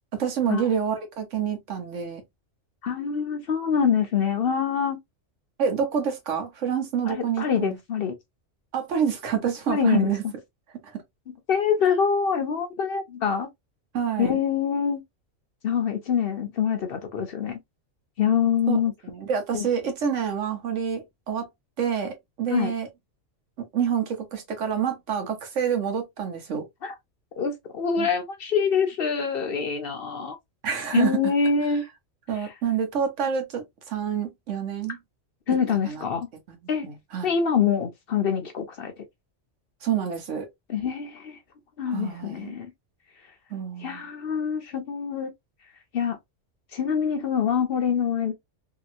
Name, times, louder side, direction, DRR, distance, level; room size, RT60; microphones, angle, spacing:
voice 1, 0.1-2.2 5.6-7.8 8.7-10.2 10.9-11.0 13.9-14.4 18.7-18.8 19.0-21.5 21.8-22.9 23.6-26.6 28.0-28.1 30.6-31.2 32.3-35.0 35.9-36.0 36.5-36.6 36.8-37.3 39.8-40.5 41.9-42.5 43.5-44.1, right 7 dB, 70° right, 1.2 m, -27 dB
voice 2, 2.8-5.0 7.1-8.2 9.7-10.3 11.5-13.5 14.2-15.0 15.6-17.6 18.2-18.9 19.5-19.7 22.5-22.7 26.8-26.9 27.4-30.4 30.9-31.8 32.4-32.5 35.5-36.3 36.7-36.9 37.2-38.9 40.7-41.4 41.8-42.7 43.8-45.3 45.9-46.2 46.7-48.3, left 7 dB, 60° left, 0.7 m, -25 dB
2.8 x 2.8 x 2.4 m
omnidirectional pair, 1.3 m